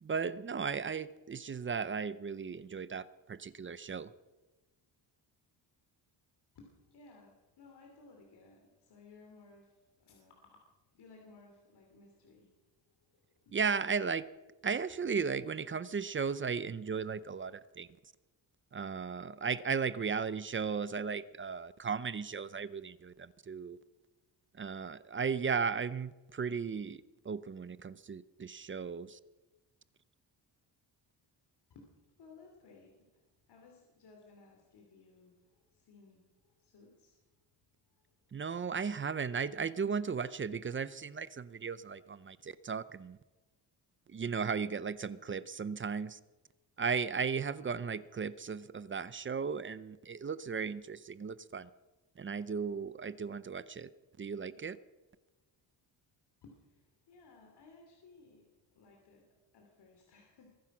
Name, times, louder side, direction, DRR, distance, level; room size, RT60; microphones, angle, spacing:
voice 1, 0.0-4.1 13.5-14.3 14.6-17.9 18.7-23.8 24.5-29.2 38.3-43.2 44.1-46.2 46.8-51.7 52.2-53.9 54.2-54.8, right 5 dB, 30° right, 16 dB, 0.6 m, -36 dB
voice 2, 6.5-10.6 10.9-12.5 13.1-13.7 14.7-14.9 19.3-20.0 31.7-31.9 32.2-33.2 33.5-37.2 38.0-38.1 38.7-38.8 56.4-58.5 58.7-59.3 59.5-60.5, left 3 dB, 65° left, 1 dB, 3.2 m, -59 dB
22.5 x 10.5 x 6.1 m, 1.1 s
cardioid pair, 120°, 43 cm